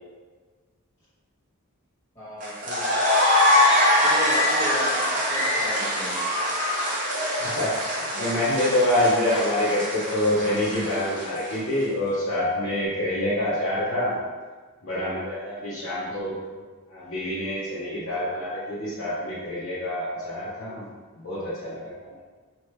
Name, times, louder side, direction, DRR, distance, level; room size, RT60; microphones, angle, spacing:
voice 1, 2.1-2.9 4.0-6.2 16.1-16.3, equal, 25° left, -14 dB, 1.2 m, -34 dB
sound 1, 2.4-11.7, left 1 dB, 35° right, 0.6 m, -24 dB
voice 2, 7.4-7.7 8.1-14.2 14.8-16.3 16.9-20.9 21.2-21.9, left 1 dB, 70° left, -11 dB, 0.8 m, -26 dB
2.8 x 2.2 x 3.2 m, 1.4 s
head